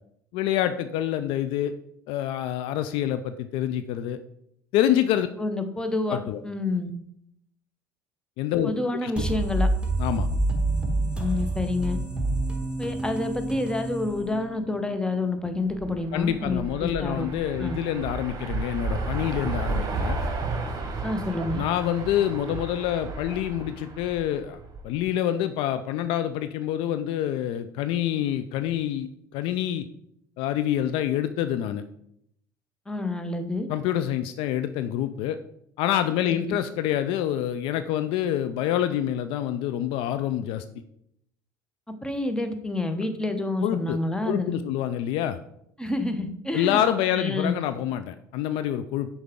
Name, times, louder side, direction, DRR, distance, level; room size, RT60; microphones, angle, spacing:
voice 1, 0.3-1.7 2.1-4.2 4.7-5.3 6.1-6.4 8.4-8.7 9.0-9.1 10.0-10.3 16.1-20.2 21.5-29.9 30.4-31.8 33.7-35.4 35.8-40.6 43.6-44.0 44.2-45.4 46.5-49.1, left 11 dB, 60° left, 11 dB, 0.4 m, -27 dB
voice 2, 5.4-6.9 8.6-9.7 11.2-12.0 12.8-17.3 17.6-17.8 21.0-21.6 32.9-33.7 36.4-36.6 42.0-44.5 45.8-46.9 47.2-47.6, left 2 dB, 10° left, 7 dB, 0.8 m, -28 dB
sound 1, 9.2-14.8, right 2 dB, 10° right, 1.4 m, -27 dB
sound 2, 15.7-24.9, right 3 dB, 35° right, 1.2 m, -33 dB
6.4 x 4.6 x 3.6 m, 0.73 s
hypercardioid pair, 65°, 11 cm